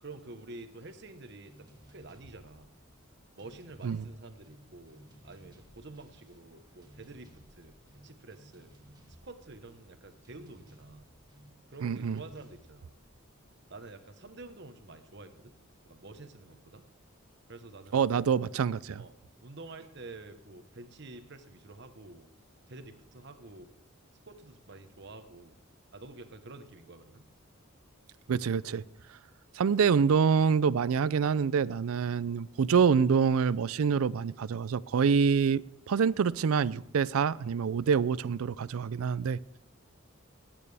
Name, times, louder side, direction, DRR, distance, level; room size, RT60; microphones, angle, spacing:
voice 1, 0.0-2.7 3.4-7.8 8.0-8.7 9.2-11.1 11.7-13.0 13.7-15.5 15.8-16.9 17.5-18.3 19.0-19.1 19.4-22.3 22.7-23.7 24.2-25.6 25.9-27.2, right 2 dB, 55° right, 1.1 m, -49 dB
sound 1, 1.5-14.2, right 1 dB, 20° right, 1.7 m, -58 dB
voice 2, 11.8-12.2 17.9-19.0 28.3-28.8 29.6-35.6 35.9-39.6, right 6 dB, 85° right, 0.4 m, -26 dB
20.5 x 9.0 x 3.4 m
head